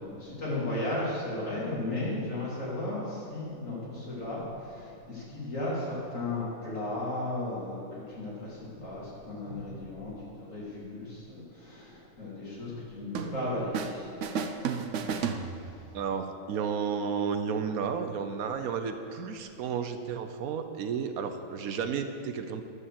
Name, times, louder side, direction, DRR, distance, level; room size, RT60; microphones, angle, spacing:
voice 1, 0.0-14.3 15.4-15.7, left 1 dB, 65° left, -7 dB, 3.4 m, -35 dB
sound 1, 13.1-14.0 14.2-16.0, right 6 dB, 65° right, 1.0 m, -33 dB
voice 2, 15.9-22.6, right 6 dB, 85° right, 8 dB, 1.2 m, -32 dB
10.5 x 6.5 x 7.6 m, 2.5 s
omnidirectional pair, 1.5 m